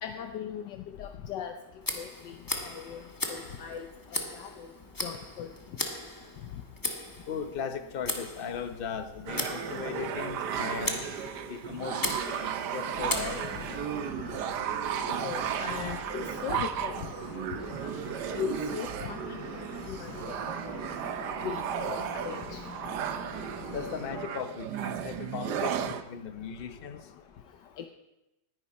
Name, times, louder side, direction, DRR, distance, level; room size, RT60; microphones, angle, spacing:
voice 1, 0.0-1.5 1.9-2.3 2.6-3.0 3.3-3.9 4.1-4.7 5.0-5.5 15.2-16.9 17.4-17.5 17.8-17.9 18.3-19.4 19.9-20.4 20.6-20.9 21.4-22.6 27.8-27.9, left 8 dB, 75° left, 6 dB, 1.4 m, -38 dB
Tick, 1.8-13.9, left 1 dB, 15° left, 1.0 m, -38 dB
voice 2, 7.3-11.0 11.5-13.4 23.7-27.0, left 7 dB, 40° left, 7 dB, 0.9 m, -37 dB
sound 1, 9.3-26.0, right 8 dB, 70° right, 1.3 m, -34 dB
sound 2, 12.9-24.3, left 4 dB, 60° left, 1.9 m, -45 dB
19.0 x 10.0 x 4.2 m, 0.95 s
omnidirectional pair, 1.9 m